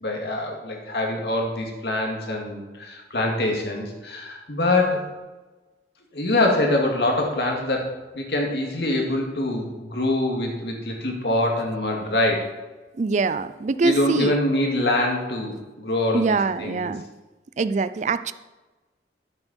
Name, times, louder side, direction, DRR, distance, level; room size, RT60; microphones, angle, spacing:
voice 1, 0.0-5.1 6.1-7.9 8.1-12.6 13.8-16.9, left 1 dB, 65° left, 0 dB, 2.4 m, -24 dB
voice 2, 13.0-14.4 16.1-17.0 17.6-18.3, right 4 dB, 40° right, 13 dB, 0.4 m, -24 dB
12.5 x 8.8 x 4.4 m, 1.2 s
head